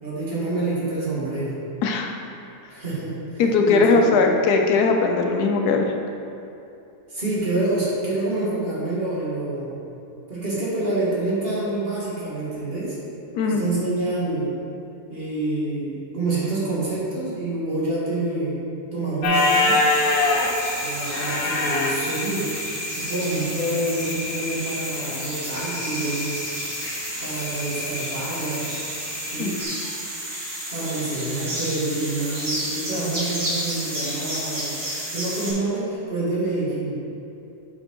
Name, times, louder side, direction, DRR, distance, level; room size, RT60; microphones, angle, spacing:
voice 1, 0.0-1.6 2.7-4.1 7.1-9.8 10.3-13.0 13.4-14.5 15.1-18.6 18.9-19.8 20.8-22.5 23.0-26.4 27.2-28.8 29.3-29.6 30.7-34.7 35.1-37.0, right 2 dB, 40° right, -8 dB, 2.2 m, -27 dB
voice 2, 1.8-2.1 3.4-5.9 13.3-13.7 29.4-29.5, left 4 dB, 85° left, 3 dB, 1.3 m, -19 dB
sound 1, 19.2-29.6, left 3 dB, 60° left, 1.1 m, -27 dB
sound 2, 19.3-35.5, right 1 dB, 90° right, 2.6 m, -32 dB
7.6 x 5.4 x 4.5 m, 2.8 s
omnidirectional pair, 1.7 m